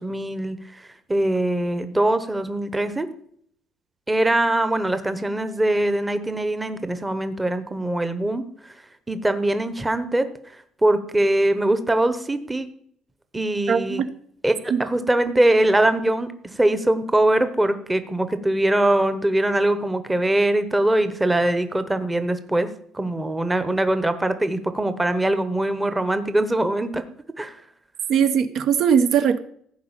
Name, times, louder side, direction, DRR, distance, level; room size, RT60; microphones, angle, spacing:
voice 1, 0.0-3.1 4.1-8.7 9.1-12.7 13.3-14.0 14.4-22.7 22.9-27.0 27.4-27.6, right 1 dB, 10° right, 10 dB, 1.0 m, -22 dB
voice 2, 13.7-14.1 14.7-14.8 28.1-29.4, right 7 dB, 55° right, 10 dB, 0.9 m, -19 dB
15.5 x 5.2 x 8.9 m, 0.65 s
cardioid pair, 155°, 0 cm